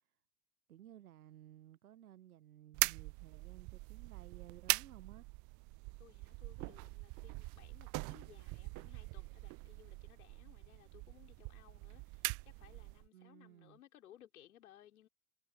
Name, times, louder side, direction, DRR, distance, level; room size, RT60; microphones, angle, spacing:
voice 1, 0.7-5.3 13.1-13.8, right 12 dB, 85° right, 0.9 m, -57 dB
sound 1, 2.7-13.1, right 26 dB, 45° right, 0.6 m, -42 dB
voice 2, 6.0-15.1, left 12 dB, 80° left, 4.2 m, -62 dB
hypercardioid pair, 80°, 43 cm